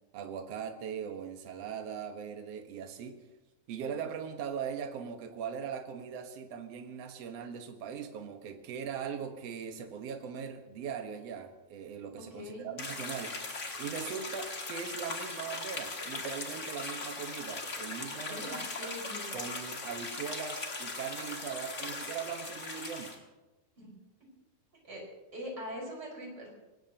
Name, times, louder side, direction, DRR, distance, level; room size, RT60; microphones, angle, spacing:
voice 1, 0.1-3.2 3.7-13.4 13.8-18.9 19.3-23.2, right 7 dB, 55° right, 5 dB, 1.9 m, -40 dB
voice 2, 12.3-12.7 18.3-19.3 23.8-23.9 24.8-25.0 25.3-26.5, equal, 25° right, -2 dB, 5.7 m, -42 dB
sound 1, 12.8-23.2, left 3 dB, 45° left, 1.0 m, -39 dB
24.5 x 20.0 x 2.9 m, 1.1 s
omnidirectional pair, 4.3 m